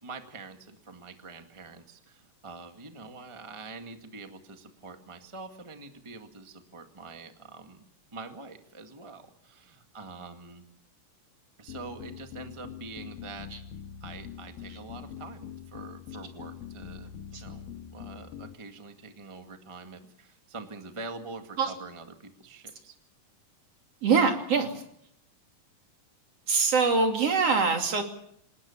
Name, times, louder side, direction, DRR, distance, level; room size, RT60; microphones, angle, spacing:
voice 1, 0.0-10.6 11.6-13.5 14.0-17.7 17.9-23.0, right 3 dB, 15° right, 5 dB, 1.0 m, -45 dB
sound 1, 11.7-18.5, left 8 dB, 85° left, 3.0 m, -43 dB
voice 2, 24.0-24.8 26.5-28.0, right 5 dB, 45° right, 4 dB, 3.6 m, -24 dB
26.5 x 19.5 x 7.2 m, 0.72 s
omnidirectional pair, 4.0 m